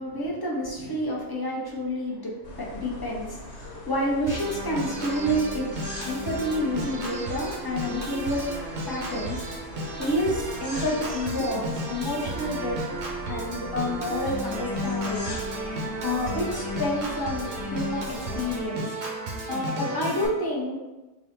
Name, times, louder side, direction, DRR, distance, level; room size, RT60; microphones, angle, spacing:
voice 1, 0.0-5.7 6.0-8.5 8.9-9.4 9.9-13.0 13.3-15.3 15.6-18.9 19.5-20.8, equal, 25° left, -4 dB, 0.7 m, -29 dB
sound 1, 2.4-18.7, left 1 dB, 85° left, 1.4 m, -41 dB
Organ, 4.3-20.3, right 1 dB, 65° right, 1.0 m, -33 dB
3.7 x 2.4 x 4.3 m, 1.1 s
omnidirectional pair, 1.2 m